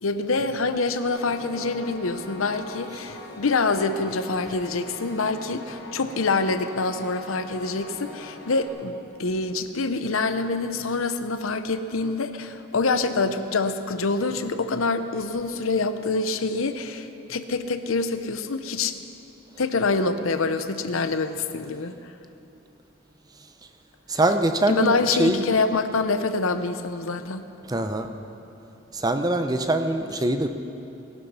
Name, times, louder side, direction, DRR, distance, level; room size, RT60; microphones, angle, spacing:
voice 1, 0.0-18.9 19.6-21.9 24.7-27.4, left 3 dB, 85° left, 10 dB, 0.8 m, -26 dB
Piano, 1.1-8.7, left 1 dB, 55° left, 3.9 m, -41 dB
voice 2, 24.1-25.4 27.7-28.1 28.9-30.5, right 1 dB, 20° right, 7 dB, 0.7 m, -23 dB
18.5 x 12.0 x 5.6 m, 2.9 s
head